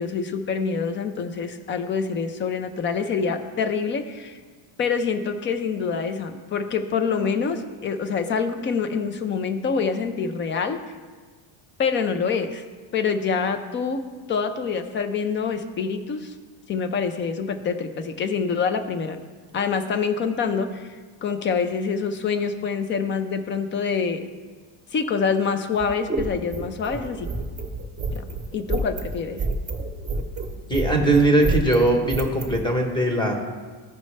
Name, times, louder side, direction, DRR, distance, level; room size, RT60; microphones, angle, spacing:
voice 1, 0.0-4.4 4.8-10.8 11.8-12.6 12.9-14.0 14.3-16.3 16.7-19.2 19.5-20.9 21.2-24.2 24.9-27.3 28.1-28.2 28.5-29.4, left 5 dB, 25° left, 8 dB, 0.3 m, -26 dB
sound 1, 25.7-32.6, right 3 dB, 15° right, 0.9 m, -29 dB
voice 2, 30.7-33.3, right 2 dB, 10° left, 2 dB, 1.0 m, -20 dB
15.0 x 5.3 x 3.2 m, 1.4 s
cardioid pair, 160°, 49 cm